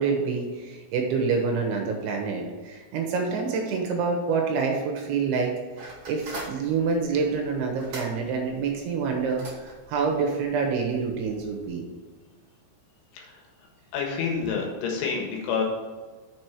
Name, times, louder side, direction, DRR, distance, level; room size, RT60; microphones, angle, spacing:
voice 1, 0.0-5.5 6.1-11.8, right 5 dB, 70° right, 1 dB, 3.4 m, -27 dB
sound 1, 5.8-11.7, right 1 dB, 50° right, 1.5 m, -44 dB
voice 2, 13.1-15.6, left 5 dB, 75° left, 0 dB, 3.7 m, -29 dB
7.6 x 6.3 x 4.6 m, 1.4 s
omnidirectional pair, 5.9 m